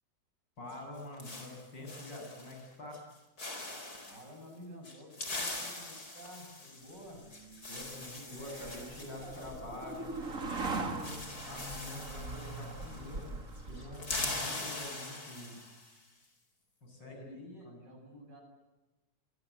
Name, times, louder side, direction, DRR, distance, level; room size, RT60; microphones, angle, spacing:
voice 1, 0.6-3.0 7.7-11.2 11.5-13.4 13.7-15.6 16.8-17.2 17.6-17.9, left 1 dB, 80° left, 3 dB, 8.6 m, -46 dB
sound 1, 0.7-2.6 2.9-3.1 3.4-4.3 4.8-10.3 10.6-10.7 10.9-13.3 13.5-16.0, left 2 dB, 55° left, 5.0 m, -42 dB
voice 2, 4.0-7.3 17.1-18.4, equal, 70° right, 3 dB, 8.9 m, -51 dB
sound 2, 7.2-14.6, right 3 dB, 45° right, 3.0 m, -41 dB
27.5 x 24.0 x 8.1 m, 1.0 s
omnidirectional pair, 1.9 m